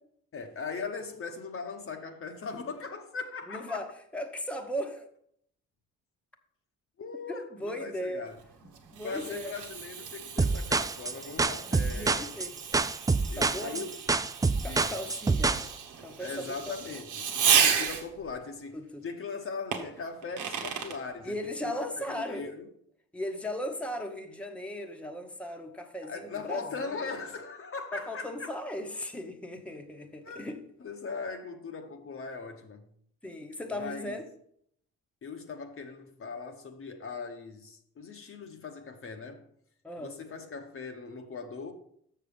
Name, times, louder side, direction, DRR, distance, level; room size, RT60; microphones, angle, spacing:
voice 1, 0.3-3.8 7.0-8.4 9.0-12.3 13.3-14.0 14.6-15.0 16.2-22.7 26.0-28.5 30.2-30.5 30.8-32.9 33.8-34.2 35.2-39.5 40.0-41.7, left 4 dB, 45° left, 1.0 m, -39 dB
voice 2, 3.5-5.1 7.3-8.2 8.9-9.5 11.9-12.6 13.4-13.8 14.6-15.7 16.0-16.7 18.7-19.1 21.2-22.5 23.1-27.0 27.9-30.6 33.2-34.3 39.8-40.1, equal, 5° left, 1.0 m, -37 dB
Fireworks, 8.3-18.3 19.7-21.0, right 7 dB, 80° right, 1.2 m, -32 dB
sound 1, 10.4-15.7, right 3 dB, 10° right, 0.3 m, -26 dB
6.7 x 6.6 x 5.2 m
cardioid pair, 90°, 30 cm